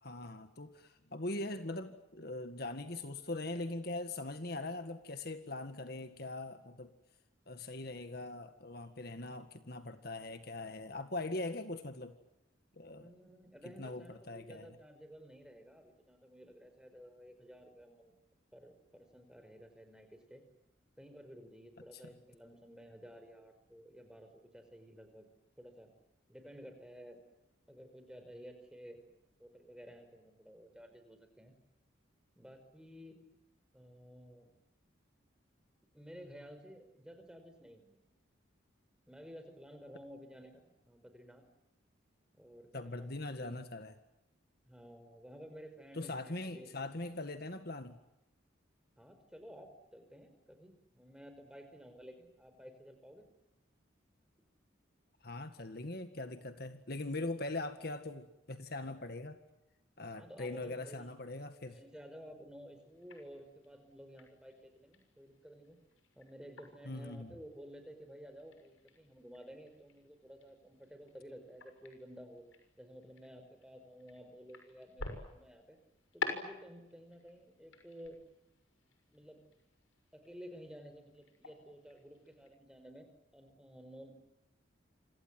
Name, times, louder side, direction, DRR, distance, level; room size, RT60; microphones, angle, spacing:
voice 1, 0.0-6.9 7.5-12.2 12.8-13.1 13.7-14.8 42.7-43.9 45.9-48.0 55.2-59.4 60.0-61.8 66.9-67.3, left 2 dB, 50° left, 8 dB, 1.9 m, -41 dB
voice 2, 12.8-18.1 18.5-20.4 21.0-25.3 25.6-25.9 26.3-27.2 27.7-29.0 29.4-31.5 32.3-33.2 33.7-34.5 35.9-38.0 39.1-41.4 42.3-43.6 44.7-46.7 49.0-53.3 54.4-54.5 60.2-61.1 61.7-65.8 66.1-72.4 72.8-75.8 76.1-78.2 79.1-79.4 80.1-84.1, equal, 5° right, 7 dB, 5.1 m, -53 dB
sound 1, 62.8-82.5, left 4 dB, 85° left, 6.4 m, -50 dB
28.5 x 27.5 x 7.6 m, 0.92 s
head